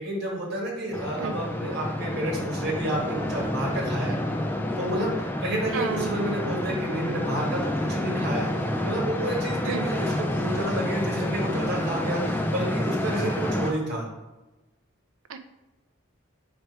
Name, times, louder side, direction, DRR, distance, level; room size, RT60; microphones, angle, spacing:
voice 1, 0.0-4.2 4.8-14.1, right 1 dB, 50° right, -2 dB, 1.8 m, -30 dB
sound 1, 0.9-13.7, left 1 dB, 10° left, 0.3 m, -29 dB
voice 2, 5.7-6.4 9.7-9.9 15.3-15.4, right 5 dB, 75° right, 9 dB, 0.5 m, -31 dB
4.8 x 4.3 x 4.7 m, 1.1 s
head